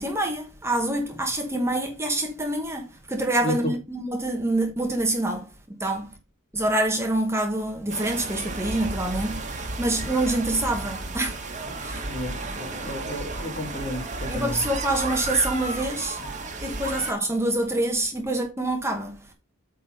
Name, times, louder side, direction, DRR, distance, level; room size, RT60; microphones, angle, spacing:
voice 1, 0.0-5.5 5.8-6.1 6.5-11.4 11.8-12.1 14.3-16.3 16.6-19.2, right 1 dB, 10° right, 1.1 m, -26 dB
voice 2, 3.4-3.8 12.1-14.6, left 1 dB, 30° left, 2.2 m, -32 dB
sound 1, 7.9-17.1, right 3 dB, 35° right, 1.5 m, -33 dB
8.6 x 4.0 x 5.2 m
head